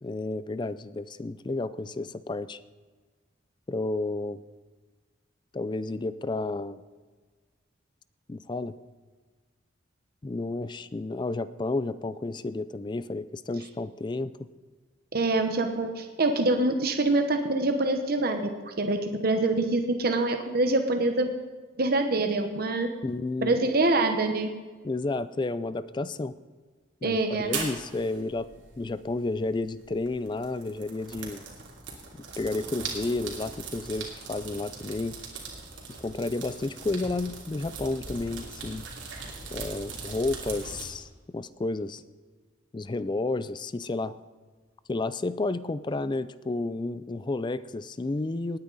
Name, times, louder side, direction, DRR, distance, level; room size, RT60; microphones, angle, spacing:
voice 1, 0.0-2.6 3.7-4.4 5.5-6.8 8.3-8.7 10.2-14.3 23.0-23.5 24.8-26.3 27.0-28.5 28.8-31.4 32.4-35.2 36.0-38.9 39.5-42.0 42.7-44.1 44.9-48.6, left 2 dB, 25° left, 15 dB, 0.4 m, -31 dB
voice 2, 15.1-21.3 21.8-22.9 23.4-24.5 27.0-27.5, right 2 dB, 50° right, 5 dB, 1.0 m, -25 dB
sound 1, 27.4-40.8, right 4 dB, 75° right, 2.9 m, -40 dB
18.5 x 9.6 x 4.0 m, 1.4 s
head